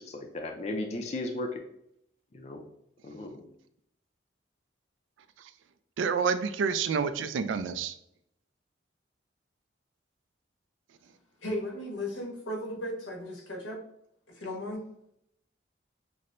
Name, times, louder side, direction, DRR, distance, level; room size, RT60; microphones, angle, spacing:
voice 1, 0.0-1.6 2.3-2.6 3.0-3.5, left 2 dB, 35° left, 4 dB, 0.4 m, -35 dB
voice 2, 6.0-7.9, right 6 dB, 80° right, 11 dB, 0.3 m, -28 dB
voice 3, 11.4-13.8 14.3-14.8, left 1 dB, 90° left, 0 dB, 1.2 m, -36 dB
5.9 x 2.1 x 2.5 m, 0.74 s
head